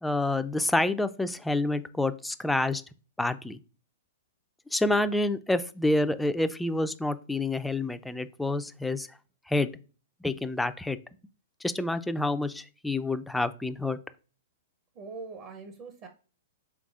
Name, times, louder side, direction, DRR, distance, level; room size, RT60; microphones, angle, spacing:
voice 1, 0.0-2.8 3.2-3.6 4.7-9.1 9.5-9.7 10.2-11.0 11.6-14.0, left 2 dB, 5° left, 11 dB, 0.3 m, -28 dB
voice 2, 14.9-16.1, right 4 dB, 40° right, 6 dB, 0.7 m, -42 dB
4.7 x 3.7 x 2.4 m, 0.36 s
hypercardioid pair, 115°, 0 cm